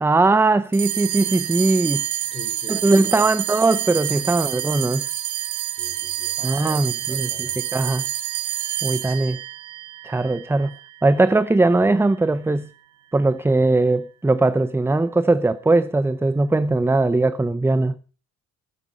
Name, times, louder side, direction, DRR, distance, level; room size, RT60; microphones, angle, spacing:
voice 1, 0.0-2.0 2.7-5.1 6.4-8.1 8.8-9.4 10.0-10.7 11.0-12.7 13.1-17.9, right 2 dB, 10° right, 0.5 m, -20 dB
sound 1, 0.7-11.4, right 13 dB, 75° right, 1.2 m, -28 dB
voice 2, 2.3-3.3 4.1-4.4 5.6-7.6 9.1-9.4, left 2 dB, 20° left, 3.6 m, -42 dB
13.5 x 11.0 x 5.3 m
cardioid pair, 90°, 30 cm